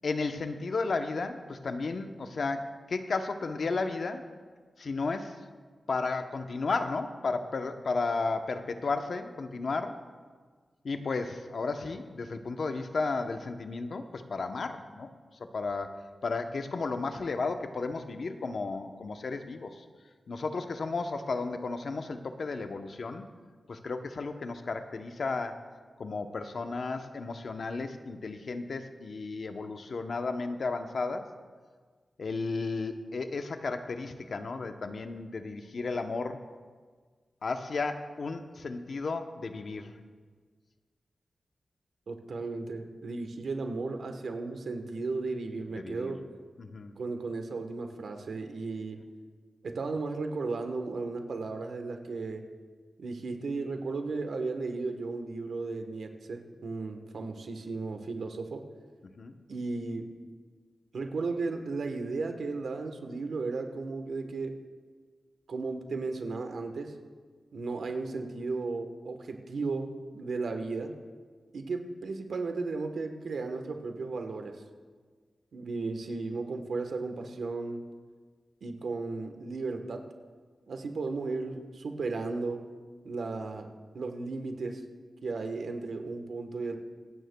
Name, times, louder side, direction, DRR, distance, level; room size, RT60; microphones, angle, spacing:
voice 1, 0.0-4.3 4.8-5.4 5.9-10.0 10.8-15.1 15.5-19.8 20.3-23.3 23.7-25.6 26.0-31.3 32.2-36.4 37.4-40.0 45.7-46.1 46.6-47.0 59.2-59.4, left 3 dB, 70° left, 7 dB, 0.8 m, -33 dB
voice 2, 42.1-46.2 47.0-49.0 49.6-52.4 53.0-58.6 59.5-60.1 60.9-64.6 65.5-66.9 67.5-70.9 71.5-74.6 75.5-77.8 78.6-80.0 80.7-82.6 83.0-83.7 83.9-84.8 85.2-86.8, right 3 dB, 80° right, 5 dB, 1.1 m, -35 dB
26.0 x 9.3 x 2.3 m, 1.5 s
cardioid pair, 45°, 0 cm